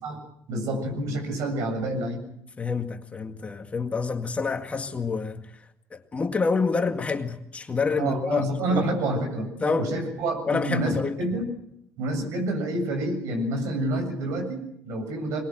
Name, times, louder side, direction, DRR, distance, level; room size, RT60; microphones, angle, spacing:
voice 1, 0.5-2.2 8.0-11.5 12.0-15.4, right 1 dB, 70° right, 7.4 m, -28 dB
voice 2, 2.6-5.5 5.9-9.0 9.6-9.9 10.5-11.2, left 4 dB, 25° left, 2.0 m, -27 dB
22.5 x 21.0 x 7.8 m
cardioid pair, 105°, 5 cm